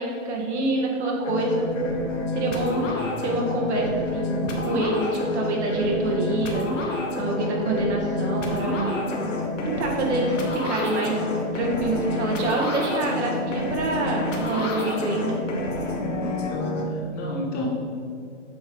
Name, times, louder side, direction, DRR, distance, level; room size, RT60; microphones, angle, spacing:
voice 1, 0.0-1.7 2.3-2.9 3.2-9.1 9.6-11.2 11.5-15.4, right 2 dB, 65° right, -1 dB, 1.6 m, -26 dB
sound 1, 1.2-16.8, left 2 dB, 80° left, 1.3 m, -28 dB
voice 2, 16.4-17.7, left 2 dB, 25° left, -2 dB, 0.9 m, -33 dB
7.8 x 3.1 x 5.2 m, 2.4 s
hypercardioid pair, 140°, 37 cm